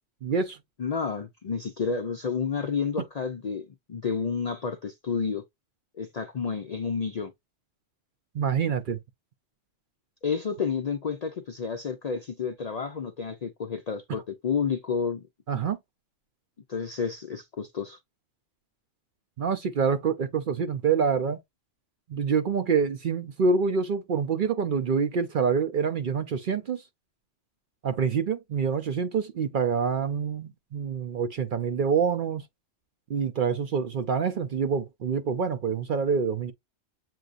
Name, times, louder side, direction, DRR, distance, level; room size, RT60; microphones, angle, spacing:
voice 1, 0.2-0.6 8.3-9.0 15.5-15.8 19.4-21.4 22.1-26.8 27.8-32.4 33.1-36.5, right 6 dB, 55° right, 0.6 m, -26 dB
voice 2, 0.8-5.4 6.0-7.3 10.2-15.3 16.7-18.0, left 5 dB, 55° left, 0.4 m, -30 dB
7.7 x 2.6 x 2.5 m
omnidirectional pair, 1.2 m